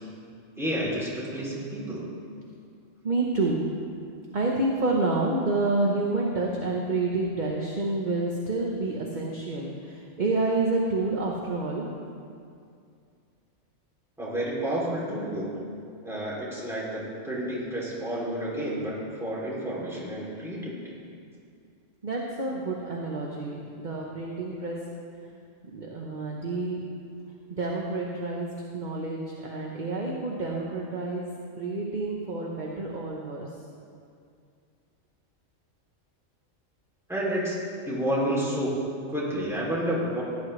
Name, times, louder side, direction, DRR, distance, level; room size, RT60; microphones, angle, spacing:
voice 1, 0.6-2.1 14.2-15.7 16.0-20.9 37.1-37.6 37.8-38.8 39.1-40.2, equal, ahead, -8 dB, 2.9 m, -30 dB
voice 2, 3.0-3.6 4.3-11.9 22.0-24.8 25.7-26.8 27.5-28.5 28.7-31.3 31.5-33.5, right 2 dB, 40° right, -2 dB, 1.1 m, -28 dB
16.5 x 10.5 x 3.3 m, 2.4 s
omnidirectional pair, 1.3 m